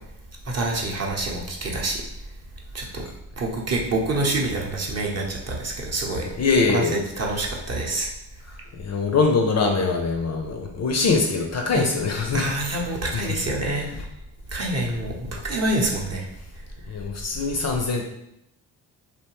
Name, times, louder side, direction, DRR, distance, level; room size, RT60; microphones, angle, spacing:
voice 1, 0.5-2.0 2.7-3.0 3.4-6.2 6.7-8.1 11.7-11.9 12.3-13.9 14.5-16.3, right 2 dB, 35° right, -1 dB, 0.7 m, -26 dB
voice 2, 6.4-7.0 8.8-12.7 13.1-13.2 16.9-18.0, left 4 dB, 40° left, 2 dB, 0.4 m, -23 dB
2.7 x 2.1 x 2.9 m, 0.81 s
supercardioid pair, 55°, 44 cm